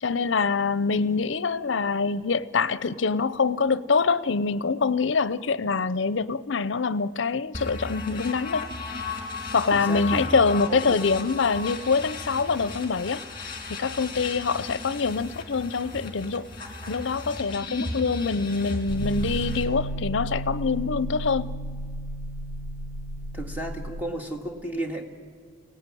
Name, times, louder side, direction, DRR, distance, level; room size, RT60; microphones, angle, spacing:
voice 1, 0.0-8.7 9.5-13.2 13.7-16.5 16.9-21.6, left 4 dB, 65° left, 0.6 m, -25 dB
sound 1, 7.5-19.6, left 3 dB, 25° left, 2.6 m, -35 dB
voice 2, 9.7-10.2 10.7-11.0 23.3-25.0, right 1 dB, 10° right, 1.9 m, -33 dB
sound 2, 18.9-24.0, right 1 dB, 25° right, 3.9 m, -33 dB
23.5 x 17.5 x 9.9 m
head